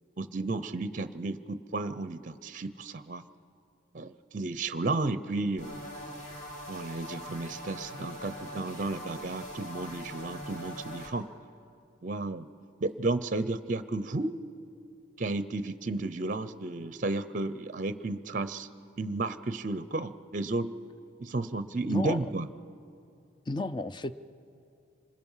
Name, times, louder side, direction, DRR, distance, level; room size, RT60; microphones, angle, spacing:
voice 1, 0.2-3.2 3.9-5.8 6.7-11.3 12.0-12.5 12.8-14.4 15.2-18.7 19.0-20.7 21.2-22.5, right 2 dB, 40° right, 13 dB, 0.5 m, -33 dB
sound 1, 5.6-11.1, equal, 40° left, 2.7 m, -42 dB
voice 2, 21.9-22.3 23.5-24.1, left 2 dB, 25° left, 12 dB, 0.5 m, -32 dB
27.0 x 21.0 x 5.6 m, 2.5 s
head